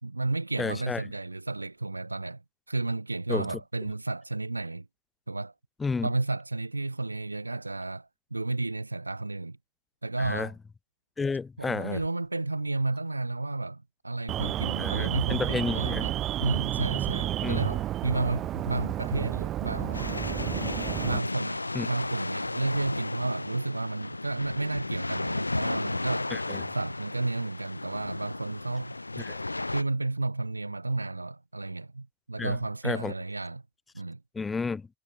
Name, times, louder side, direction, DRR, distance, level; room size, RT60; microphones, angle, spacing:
voice 1, 0.0-2.4 2.7-4.9 5.3-5.5 6.0-9.6 10.0-10.5 11.6-16.1 16.4-20.0 21.0-26.3 26.7-29.0 29.7-33.6 33.9-34.2, right 2 dB, 80° right, 4.2 m, -32 dB
voice 2, 0.6-1.0 3.3-3.5 5.8-6.1 10.2-10.5 11.2-12.0 14.8-16.1 17.4-17.6 21.7-21.9 26.3-26.6 29.2-29.4 32.4-32.6 32.8-33.1 34.3-34.9, left 4 dB, 15° left, 0.7 m, -31 dB
Alarm, 14.3-21.2, right 13 dB, 30° right, 3.1 m, -31 dB
sound 1, 19.9-29.8, left 2 dB, 85° left, 1.3 m, -34 dB
figure-of-eight pair, 90°, 0 cm